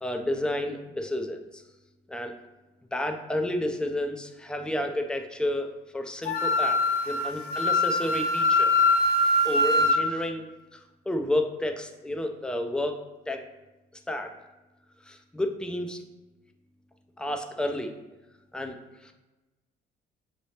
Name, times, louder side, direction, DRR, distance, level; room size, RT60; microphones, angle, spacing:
voice 1, 0.0-1.6 2.1-2.3 2.9-8.7 9.4-13.5 14.1-14.3 15.0-16.0 17.2-17.9 18.5-18.8 19.0-19.1, left 1 dB, 5° left, 5 dB, 0.4 m, -31 dB
Wind instrument woodwind instrument, 6.3-10.0, left 2 dB, 70° left, 0.6 m, -23 dB
5.8 x 3.2 x 2.8 m, 1.1 s
cardioid pair, 110°, 17 cm